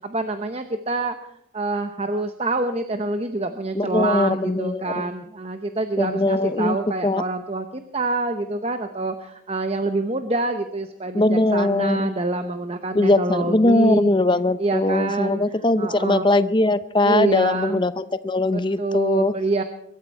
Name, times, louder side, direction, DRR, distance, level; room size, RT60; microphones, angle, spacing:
voice 1, 0.0-1.1 1.5-14.1 14.6-15.4 15.8-16.2 17.0-17.8 18.5-19.6, right 2 dB, 30° right, 8 dB, 0.8 m, -26 dB
voice 2, 3.7-5.1 6.0-6.8 7.0-7.2 11.1-12.1 12.9-19.3, left 2 dB, 25° left, 14 dB, 0.6 m, -20 dB
23.0 x 13.0 x 4.6 m, 0.75 s
head